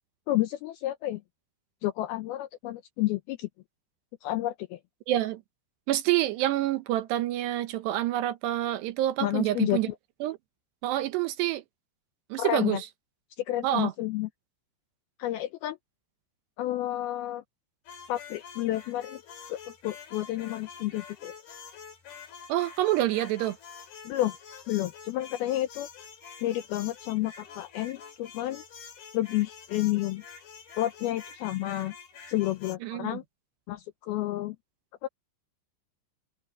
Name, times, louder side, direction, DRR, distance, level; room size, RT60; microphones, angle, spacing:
voice 1, 0.3-1.2 1.8-3.5 4.2-4.8 9.2-10.0 12.3-12.8 13.5-14.3 15.2-15.8 16.6-17.4 18.1-19.2 19.5-19.6 19.8-21.3 24.0-24.3 24.7-25.9 26.4-28.6 29.1-30.2 30.8-31.9 32.3-33.2 33.7-34.6 35.0-35.1, left 15 dB, 85° left, 2.2 m, -30 dB
voice 2, 5.1-5.4 5.9-9.9 10.2-10.4 10.8-11.6 12.3-12.8 13.6-13.9 22.5-23.6 32.8-33.2, right 14 dB, 75° right, 3.0 m, -27 dB
sound 1, 17.9-32.8, left 6 dB, 55° left, 5.4 m, -47 dB
omnidirectional pair, 5.2 m